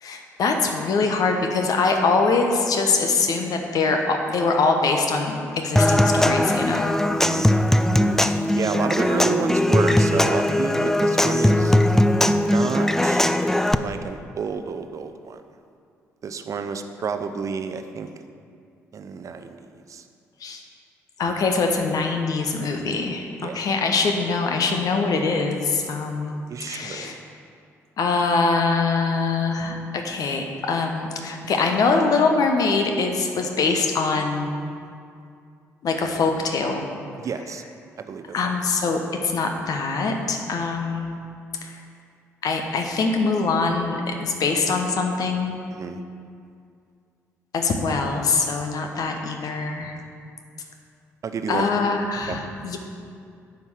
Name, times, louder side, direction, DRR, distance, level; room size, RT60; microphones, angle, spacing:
voice 1, 0.0-6.9 20.4-20.6 21.2-26.4 26.7-27.2 28.0-34.5 35.8-36.9 38.3-41.2 41.6-41.8 42.4-45.6 47.5-50.0 51.5-52.8, left 4 dB, 55° left, 4 dB, 1.0 m, -23 dB
Human voice / Acoustic guitar / Percussion, 5.8-13.7, left 1 dB, 5° left, 0.4 m, -19 dB
voice 2, 7.1-8.2 8.5-11.8 12.4-13.2 13.8-15.4 16.2-18.1 18.9-19.6 19.9-20.0 23.4-23.6 26.5-27.2 37.2-37.6 38.0-38.4 45.8-46.0 51.2-51.7 52.3-52.4, right 5 dB, 45° right, 8 dB, 0.7 m, -30 dB
9.4 x 5.3 x 6.2 m, 2.4 s
figure-of-eight pair, 45°, 8 cm